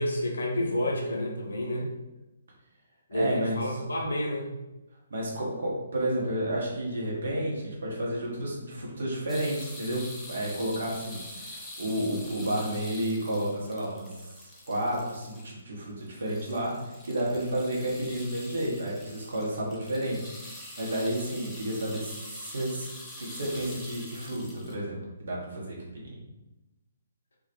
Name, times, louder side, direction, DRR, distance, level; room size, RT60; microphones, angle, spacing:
voice 1, 0.0-1.9 3.1-4.5, left 1 dB, 65° left, 0 dB, 0.5 m, -29 dB
voice 2, 3.1-3.8 5.1-14.1 14.7-20.3 20.8-22.9 23.2-26.2, right 1 dB, 55° right, -3 dB, 0.8 m, -31 dB
sound 1, 9.3-15.6 15.9-24.8, left 1 dB, 5° left, 0.4 m, -45 dB
2.2 x 2.2 x 2.8 m, 1.0 s
figure-of-eight pair, 130°, 0 cm